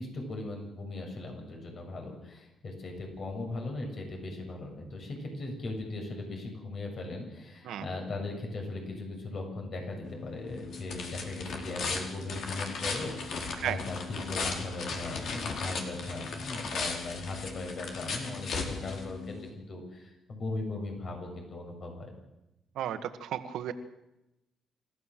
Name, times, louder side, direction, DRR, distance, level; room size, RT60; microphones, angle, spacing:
voice 1, 0.0-22.1, left 2 dB, 50° left, 2 dB, 7.1 m, -38 dB
sound 1, 10.0-19.5, left 4 dB, 65° left, 4.5 m, -37 dB
voice 2, 22.7-23.7, right 11 dB, 80° right, 9 dB, 1.8 m, -34 dB
28.5 x 15.0 x 7.7 m, 0.92 s
cardioid pair, 90°, 0 cm